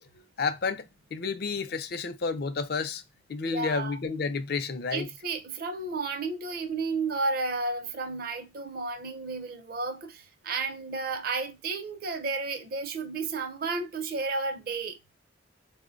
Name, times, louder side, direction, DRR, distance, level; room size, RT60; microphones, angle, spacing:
voice 1, 0.4-0.8 1.1-3.0 3.3-5.1, left 4 dB, 60° left, 0.4 m, -30 dB
voice 2, 3.5-4.0 4.9-15.0, right 3 dB, 55° right, 0.5 m, -32 dB
4.3 x 2.1 x 2.4 m
head